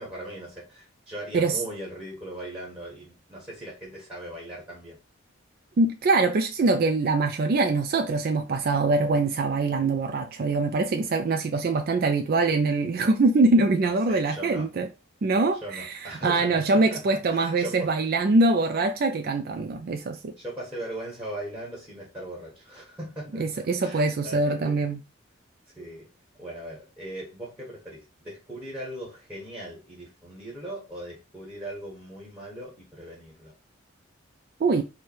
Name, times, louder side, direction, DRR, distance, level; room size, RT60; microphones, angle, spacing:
voice 1, 0.0-5.0 13.8-14.7 15.6-17.9 20.4-24.8 25.7-26.1 26.4-33.5, right 1 dB, 5° right, 1.4 m, -39 dB
voice 2, 5.8-14.9 15.2-20.3 23.4-25.0 34.6-34.8, right 3 dB, 45° right, 0.3 m, -23 dB
4.7 x 2.2 x 4.4 m
head